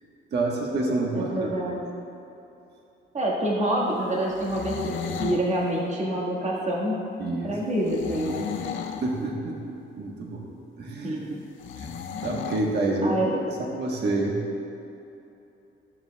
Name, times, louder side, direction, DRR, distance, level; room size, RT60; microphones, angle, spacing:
voice 1, 0.3-1.5 7.2-7.6 9.0-10.4 10.8-11.2 11.8-11.9 12.2-14.4, right 2 dB, 60° right, -2 dB, 1.3 m, -28 dB
voice 2, 1.1-1.8 3.1-7.1 7.4-8.5 11.0-11.4 13.0-13.3, right 1 dB, 35° right, -4 dB, 1.8 m, -27 dB
sound 1, 4.2-5.5 7.8-9.1 11.6-12.7, left 7 dB, 75° left, 0.7 m, -34 dB
13.5 x 7.2 x 2.3 m, 2.9 s
cardioid pair, 90°, 20 cm